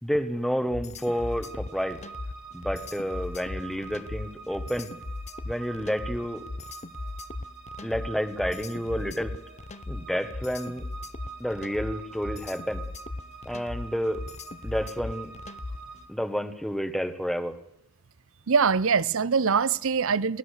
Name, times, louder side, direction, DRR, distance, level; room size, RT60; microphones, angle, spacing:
voice 1, 0.0-2.0 2.5-4.9 5.4-6.4 7.8-9.3 9.9-10.9 11.4-12.8 13.4-14.2 14.6-15.3 16.1-17.6, equal, ahead, 1.5 m, -30 dB
sound 1, 0.7-16.0, left 2 dB, 30° left, 0.8 m, -38 dB
sound 2, 1.0-16.1, right 5 dB, 45° right, 2.9 m, -45 dB
voice 2, 18.5-20.4, right 5 dB, 65° right, 0.7 m, -23 dB
22.5 x 17.5 x 6.6 m
head